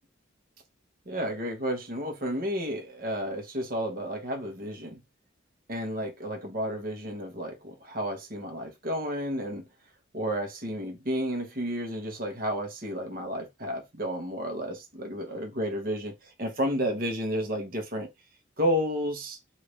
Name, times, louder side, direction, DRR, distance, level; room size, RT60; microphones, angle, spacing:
voice 1, 1.1-5.0 5.7-9.7 10.1-18.1 18.6-19.4, equal, 45° right, 1.0 m, -31 dB
3.2 x 2.6 x 3.1 m
head